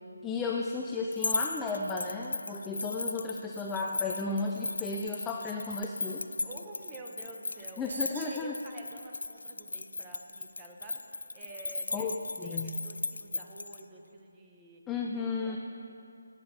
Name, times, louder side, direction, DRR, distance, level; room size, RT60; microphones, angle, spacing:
voice 1, 0.2-6.3 7.8-8.5 11.9-12.8 14.9-15.6, left 3 dB, 5° left, 0 dB, 0.3 m, -34 dB
sound 1, 1.1-13.8, left 3 dB, 80° left, 0.4 m, -37 dB
voice 2, 6.4-12.2 12.4-14.8 15.1-15.6, right 2 dB, 10° right, 0 dB, 0.7 m, -49 dB
sound 2, 7.9-8.5, right 3 dB, 45° right, 1.2 m, -43 dB
18.5 x 8.6 x 4.0 m, 2.5 s
figure-of-eight pair, 175°, 0 cm